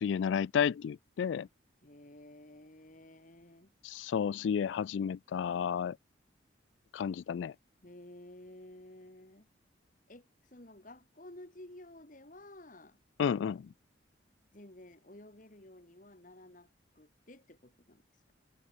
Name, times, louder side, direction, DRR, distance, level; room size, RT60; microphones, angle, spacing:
voice 1, 0.0-1.5 3.8-6.0 6.9-7.5 13.2-13.7, left 7 dB, 80° left, 0.3 m, -31 dB
voice 2, 1.8-3.7 7.8-9.5 10.1-13.0 14.5-18.0, left 1 dB, 45° left, 2.6 m, -53 dB
head